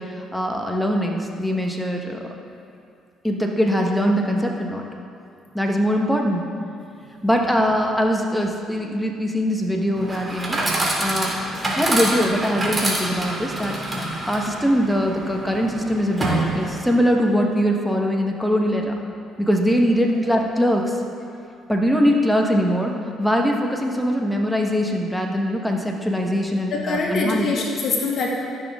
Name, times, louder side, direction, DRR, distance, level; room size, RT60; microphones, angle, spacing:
voice 1, 0.0-2.2 3.2-4.8 5.5-6.4 7.2-10.6 11.0-11.4 11.8-13.8 14.3-18.9 19.4-21.0 21.7-22.9 23.2-27.7, equal, ahead, 1 dB, 1.2 m, -22 dB
Chatter / Coin (dropping), 10.0-17.0, right 1 dB, 25° right, 2.3 m, -26 dB
voice 2, 26.7-28.3, left 3 dB, 60° left, -2 dB, 1.7 m, -24 dB
14.5 x 6.2 x 3.7 m, 2.4 s
supercardioid pair, 70°, 0 cm